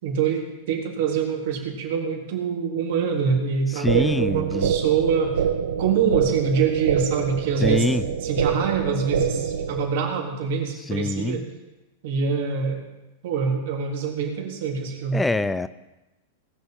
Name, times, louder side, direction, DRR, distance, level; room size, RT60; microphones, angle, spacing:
voice 1, 0.0-5.4 5.8-7.9 8.2-11.5 12.0-12.8 13.2-15.2, right 6 dB, 60° right, 0 dB, 3.7 m, -25 dB
voice 2, 3.7-4.7 7.6-8.0 10.9-11.4 15.1-15.7, left 2 dB, 10° left, 15 dB, 0.6 m, -24 dB
sound 1, 3.9-9.9, right 7 dB, 80° right, 1.2 m, -25 dB
19.5 x 6.8 x 7.6 m, 1.0 s
hypercardioid pair, 105°, 0 cm